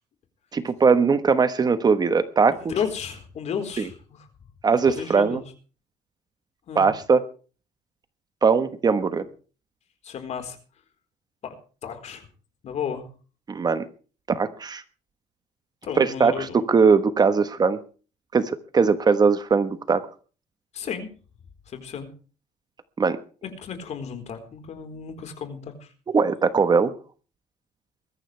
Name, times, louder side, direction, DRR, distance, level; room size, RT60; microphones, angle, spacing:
voice 1, 0.5-2.6 4.6-5.4 6.7-7.2 8.4-9.2 13.5-13.8 14.3-14.8 16.0-17.8 18.3-20.0 23.0-23.2 26.1-26.9, right 5 dB, 25° right, 11 dB, 1.2 m, -20 dB
voice 2, 2.5-4.3 4.9-5.4 6.7-6.9 10.0-10.6 11.4-11.5 11.8-12.3 12.6-13.1 15.8-16.5 20.7-21.1 21.7-22.1 23.4-25.9, left 7 dB, 45° left, 6 dB, 4.2 m, -33 dB
21.5 x 14.0 x 3.4 m, 0.38 s
cardioid pair, 135°, 15 cm